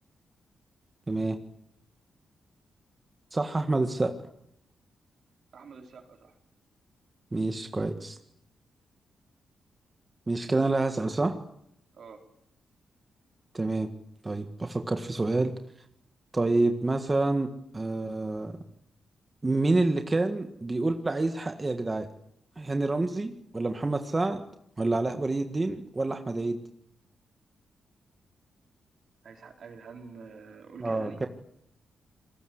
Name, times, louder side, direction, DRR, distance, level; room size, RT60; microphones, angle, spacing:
voice 1, 1.1-1.4 3.3-4.1 7.3-8.2 10.3-11.4 13.5-13.9 14.2-15.5 16.3-18.5 19.4-22.1 22.6-24.4 24.8-26.6 30.8-31.3, right 2 dB, 25° right, 6 dB, 1.7 m, -28 dB
voice 2, 5.5-6.4 11.9-12.2 29.2-31.3, right 5 dB, 65° right, 4 dB, 4.4 m, -47 dB
29.0 x 21.5 x 8.0 m, 0.75 s
cardioid pair, 110°, 0 cm